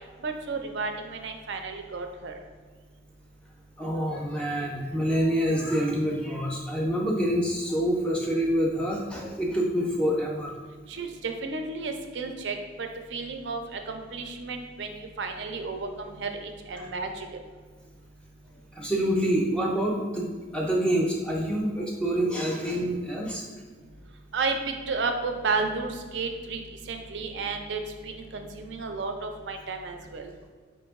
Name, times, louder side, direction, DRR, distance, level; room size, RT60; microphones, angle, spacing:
voice 1, 0.2-2.4 10.9-17.3 24.3-26.6 26.9-30.3, right 4 dB, 70° right, 5 dB, 0.5 m, -32 dB
voice 2, 3.8-10.5 16.8-16.9 18.7-23.5, equal, 5° left, -2 dB, 0.4 m, -27 dB
4.2 x 3.0 x 3.5 m, 1.5 s
head